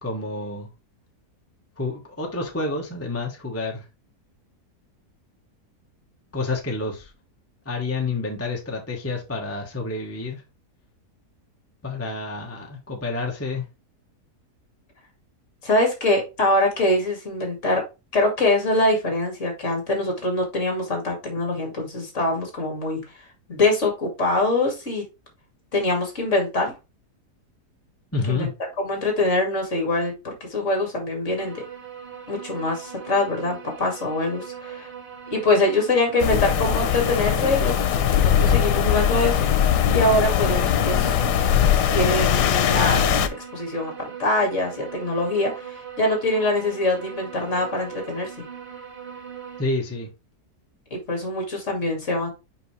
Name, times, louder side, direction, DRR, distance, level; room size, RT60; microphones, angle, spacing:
voice 1, 0.0-0.7 1.8-3.8 6.3-7.1 7.6-10.4 11.8-13.6 28.1-28.5 49.6-50.1, left 3 dB, 10° left, 1.1 m, -29 dB
voice 2, 15.6-17.8 18.1-23.0 23.5-25.0 25.7-26.7 28.3-28.5 28.8-31.6 32.3-34.9 35.3-37.8 38.1-39.6 39.9-41.1 41.9-43.1 43.5-48.4 50.9-52.3, left 2 dB, 45° left, 2.4 m, -24 dB
sound 1, 31.4-49.6, right 8 dB, 70° right, 3.7 m, -39 dB
sound 2, 36.2-43.3, left 9 dB, 85° left, 1.3 m, -20 dB
5.8 x 5.4 x 3.2 m
omnidirectional pair, 1.7 m